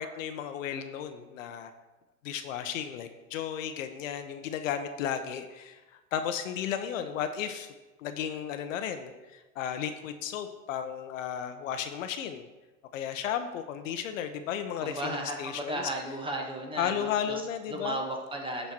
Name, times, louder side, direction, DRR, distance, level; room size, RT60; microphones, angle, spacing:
voice 1, 0.0-1.7 2.2-7.7 8.0-12.5 12.9-15.9 16.8-18.0, left 9 dB, 70° left, 8 dB, 1.0 m, -34 dB
voice 2, 14.8-17.4 17.7-18.7, right 1 dB, 10° right, 2 dB, 1.5 m, -35 dB
11.5 x 4.5 x 4.4 m, 1.1 s
hypercardioid pair, 105°, 41 cm